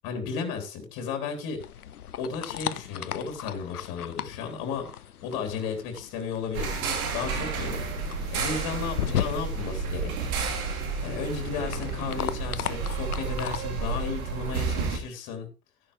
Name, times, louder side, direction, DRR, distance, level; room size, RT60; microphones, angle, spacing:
voice 1, 0.0-1.6 2.2-10.1 11.0-15.5, left 5 dB, 55° left, 5 dB, 3.3 m, -34 dB
sound 1, 1.6-13.6, left 10 dB, 90° left, 0.6 m, -37 dB
sound 2, 6.5-15.0, right 4 dB, 70° right, 2.8 m, -31 dB
14.0 x 10.0 x 3.2 m, 0.32 s
figure-of-eight pair, 70°, 43 cm